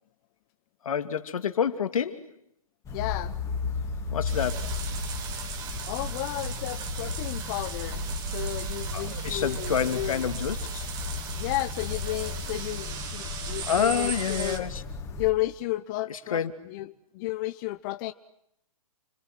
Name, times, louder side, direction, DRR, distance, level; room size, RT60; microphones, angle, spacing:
voice 1, 0.8-2.3 4.1-4.7 8.9-10.9 13.7-14.8 16.1-16.5, left 8 dB, 70° left, 2.5 m, -28 dB
sound 1, 2.8-15.3, left 3 dB, 15° left, 3.9 m, -34 dB
voice 2, 2.9-3.4 5.8-10.3 11.4-14.7 15.2-18.1, left 17 dB, 35° left, 1.1 m, -33 dB
sound 2, 4.2-14.6, right 7 dB, 20° right, 3.3 m, -38 dB
29.5 x 22.5 x 9.1 m
hypercardioid pair, 140°, 18 cm